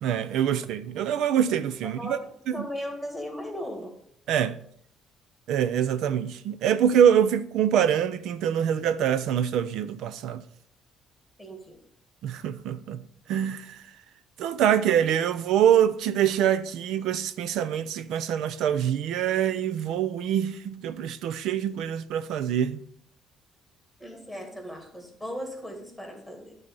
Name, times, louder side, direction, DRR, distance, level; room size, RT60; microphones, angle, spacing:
voice 1, 0.0-2.2 2.6-2.7 4.3-4.6 5.5-10.4 12.2-13.0 13.3-13.8 14.4-22.8, right 9 dB, 65° right, 0.5 m, -25 dB
voice 2, 1.8-3.9 11.4-11.8 24.0-26.6, equal, 5° right, 2.0 m, -37 dB
12.0 x 4.1 x 6.8 m
cardioid pair, 180°, 0 cm